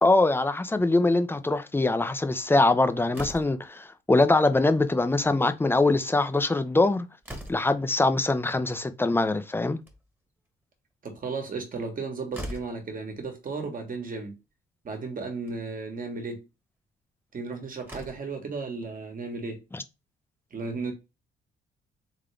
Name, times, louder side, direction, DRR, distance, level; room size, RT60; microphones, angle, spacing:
voice 1, 0.0-7.1 7.5-9.8 19.7-19.8, left 2 dB, 10° left, 0.6 m, -23 dB
Slam, 3.1-3.7 5.0-5.3 5.7-5.8 6.0-6.1 6.7-7.8 9.6-10.3 11.9-12.0 12.3-12.8 13.9-14.0 14.4-14.5 15.3-15.6 17.3-17.4 17.8-18.4, equal, 10° right, 1.4 m, -41 dB
voice 2, 11.0-14.4 14.8-16.4 17.3-19.6 20.5-20.9, right 4 dB, 45° right, 1.6 m, -34 dB
3.8 x 3.6 x 3.4 m
cardioid pair, 90°, 20 cm